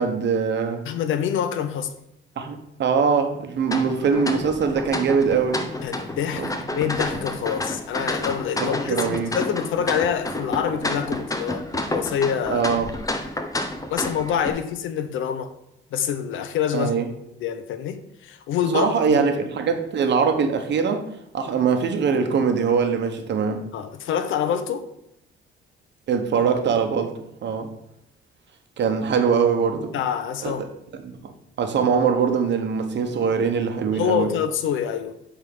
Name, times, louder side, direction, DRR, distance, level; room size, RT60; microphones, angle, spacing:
voice 1, 0.0-0.9 2.4-5.6 6.3-6.5 8.6-9.4 12.5-12.9 16.7-17.1 18.7-21.0 21.3-23.6 26.1-27.1 27.4-27.7 28.8-29.9 30.4-30.7 31.0-31.3 31.6-34.3, right 6 dB, 65° right, 1.1 m, -22 dB
voice 2, 0.9-1.9 5.8-12.6 13.9-15.5 15.9-16.9 17.4-19.3 23.7-24.9 29.9-30.6 33.9-35.1, left 8 dB, 80° left, 0.8 m, -26 dB
sound 1, 3.7-14.5, left 1 dB, 15° left, 0.9 m, -30 dB
7.9 x 3.7 x 5.4 m
cardioid pair, 90°, 20 cm